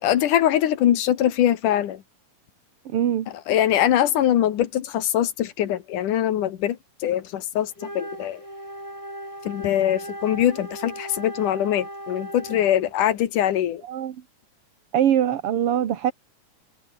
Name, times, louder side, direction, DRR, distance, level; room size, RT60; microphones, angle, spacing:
voice 1, 0.0-2.0 3.5-8.4 9.4-13.8, left 11 dB, 90° left, 3.1 m, -22 dB
voice 2, 2.9-3.3 13.8-14.2 14.9-16.1, right 10 dB, 55° right, 2.0 m, -22 dB
Wind instrument woodwind instrument, 7.7-13.0, right 1 dB, 10° right, 6.3 m, -37 dB
omnidirectional pair, 3.5 m